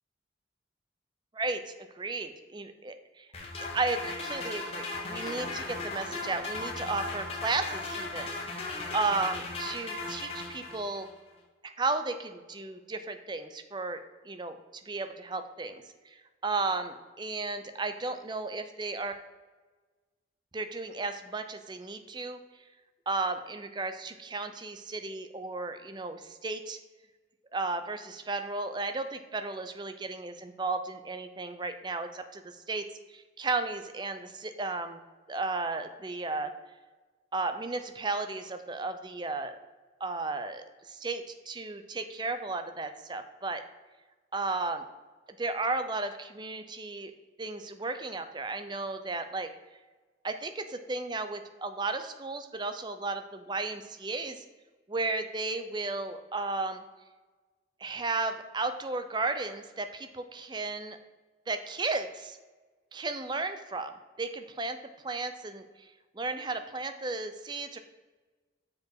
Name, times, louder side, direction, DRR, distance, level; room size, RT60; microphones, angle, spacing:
voice 1, 1.3-3.3 3.7-8.4 8.9-11.1 11.6-14.0 14.2-14.6 14.9-16.1 16.4-19.1 20.5-22.4 23.1-26.8 27.5-32.8 33.1-35.0 35.3-36.5 37.3-39.5 40.0-43.6 44.3-44.8 45.4-47.1 47.4-49.5 50.2-54.4 54.9-56.8 57.8-61.0 61.5-62.4 62.9-64.8 65.0-65.7 66.1-67.8, right 3 dB, 25° right, 8 dB, 0.5 m, -34 dB
sound 1, 3.3-11.1, left 3 dB, 30° left, 1.3 m, -37 dB
7.1 x 4.8 x 4.6 m, 1.3 s
head